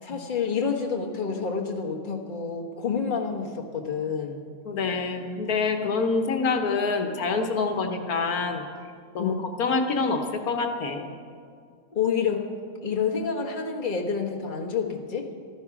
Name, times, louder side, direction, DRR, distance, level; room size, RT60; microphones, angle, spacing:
voice 1, 0.0-4.4 9.2-9.4 11.9-12.5 12.8-15.3, left 6 dB, 35° left, 0 dB, 1.5 m, -28 dB
voice 2, 4.6-8.6 9.1-11.1, left 4 dB, 80° left, 5 dB, 1.6 m, -26 dB
15.0 x 13.0 x 6.0 m, 2.2 s
omnidirectional pair, 1.6 m